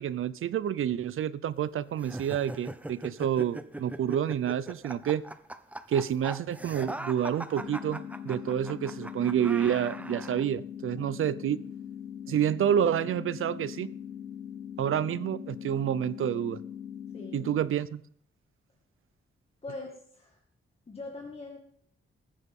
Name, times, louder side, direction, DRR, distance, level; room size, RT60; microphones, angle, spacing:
voice 1, 0.0-5.2 5.9-11.6 12.3-13.9 14.8-16.6 17.3-18.0, right 9 dB, 75° right, 0.6 m, -28 dB
sound 1, 2.0-10.4, right 1 dB, 5° right, 0.7 m, -41 dB
sound 2, 7.6-17.6, left 9 dB, 45° left, 2.8 m, -41 dB
voice 2, 17.1-17.5 19.6-20.4 20.9-21.6, left 3 dB, 30° left, 2.1 m, -42 dB
20.0 x 10.0 x 3.7 m
wide cardioid pair, 150°, 21 cm